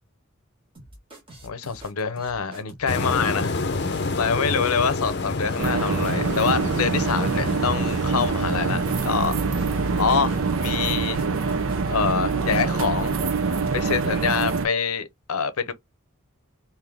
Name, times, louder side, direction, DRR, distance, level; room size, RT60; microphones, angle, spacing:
sound 1, 0.7-11.9, right 1 dB, 25° right, 1.3 m, -46 dB
voice 1, 1.4-9.3 10.0-11.2 11.9-13.2 13.7-15.7, left 6 dB, 90° left, 0.7 m, -26 dB
sound 2, 2.9-11.1, left 3 dB, 50° left, 0.6 m, -30 dB
sound 3, 5.6-14.7, right 4 dB, 70° right, 0.6 m, -25 dB
3.8 x 2.6 x 3.4 m
head